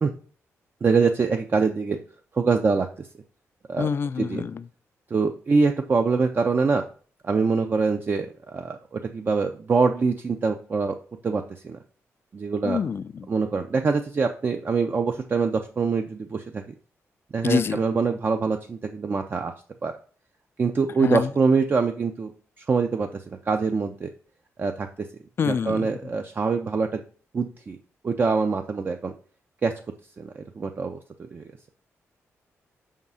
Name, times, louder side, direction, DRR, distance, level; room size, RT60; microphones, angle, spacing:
voice 1, 0.8-2.0 2.3-3.1 3.7-3.9 4.2-4.4 5.1-6.8 7.2-11.0 11.2-11.8 12.3-12.8 13.3-16.7 17.3-19.5 19.8-19.9 20.6-22.3 22.6-24.1 24.6-25.1 25.4-27.0 27.3-27.8 28.0-29.1 29.6-29.7 30.2-31.5, right 4 dB, 40° right, 0.5 m, -24 dB
voice 2, 3.8-4.7 12.6-13.3 17.4-17.8 21.0-21.3 25.4-25.9, left 6 dB, 45° left, 0.3 m, -26 dB
5.3 x 3.6 x 5.5 m
cardioid pair, 90°, 5 cm